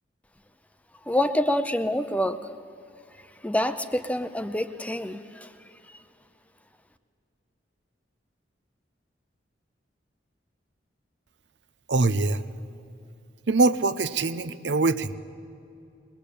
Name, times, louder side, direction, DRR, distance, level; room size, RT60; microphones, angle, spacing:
voice 1, 1.0-2.5 3.2-6.0, left 1 dB, 10° left, 10 dB, 0.7 m, -27 dB
voice 2, 11.9-12.4 13.5-15.1, right 3 dB, 70° right, 12 dB, 0.8 m, -23 dB
22.0 x 21.0 x 8.5 m, 2.6 s
head